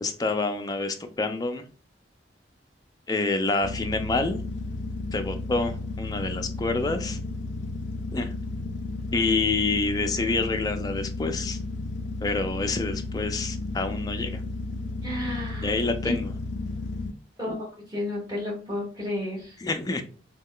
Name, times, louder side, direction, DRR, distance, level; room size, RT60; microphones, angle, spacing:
voice 1, 0.0-1.7 3.1-4.4 5.1-7.2 8.1-8.3 9.1-11.6 12.2-14.4 15.6-16.3 19.6-20.0, left 3 dB, 20° left, 6 dB, 0.4 m, -27 dB
sound 1, 3.6-17.1, left 2 dB, 85° left, 0.3 m, -33 dB
voice 2, 15.0-15.7 16.0-16.2 17.4-19.6, left 1 dB, 20° right, -3 dB, 1.4 m, -32 dB
3.2 x 2.2 x 3.7 m, 0.39 s
head